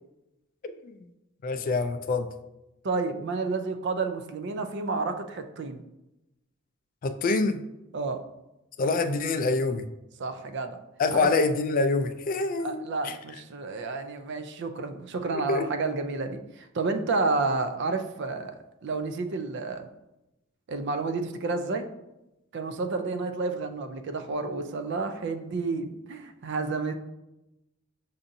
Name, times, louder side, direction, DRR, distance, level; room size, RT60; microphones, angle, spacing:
voice 1, 1.4-2.3 7.0-7.6 8.8-9.8 11.0-13.1 15.5-15.7, left 3 dB, 40° left, 9 dB, 0.3 m, -26 dB
voice 2, 2.8-5.8 7.9-8.2 10.2-10.8 11.1-11.3 12.6-18.6 18.8-19.9 20.7-21.9 22.5-26.9, right 3 dB, 55° right, 7 dB, 0.4 m, -30 dB
6.9 x 2.6 x 2.6 m, 0.92 s
head